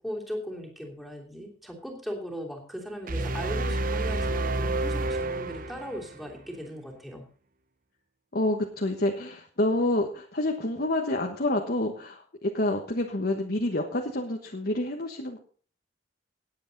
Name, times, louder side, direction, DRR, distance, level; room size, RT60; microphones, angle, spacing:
voice 1, 0.0-7.3, equal, ahead, -2 dB, 3.0 m, -38 dB
sound 1, 3.1-6.3, right 2 dB, 45° right, 0.8 m, -29 dB
voice 2, 8.3-15.4, left 1 dB, 50° left, 2 dB, 1.3 m, -28 dB
19.0 x 8.2 x 4.0 m, 0.42 s
head